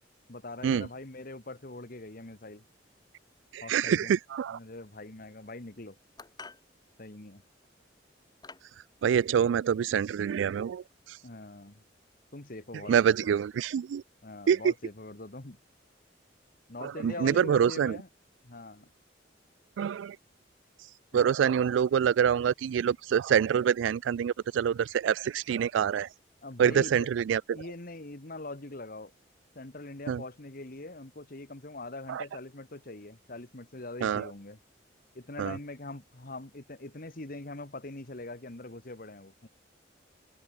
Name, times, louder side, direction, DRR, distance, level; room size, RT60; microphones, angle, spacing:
voice 1, 0.3-2.6 3.6-4.1 4.5-6.0 7.0-7.4 11.2-11.8 12.3-13.1 14.2-15.6 16.7-18.1 18.4-18.9 21.1-21.3 26.4-27.1 27.5-29.1 29.6-34.6 35.1-39.5, left 2 dB, 50° left, 1.8 m, -43 dB
voice 2, 3.5-4.6 9.0-11.2 12.8-14.0 14.5-14.7 16.8-18.0 19.8-20.2 21.1-26.1 26.6-27.6 30.1-30.2 32.1-32.2 34.0-34.3 35.4-35.6, right 8 dB, 75° right, 0.3 m, -26 dB
sound 1, 6.2-6.7 7.6-7.8 8.4-8.8, left 4 dB, 20° left, 2.3 m, -48 dB
head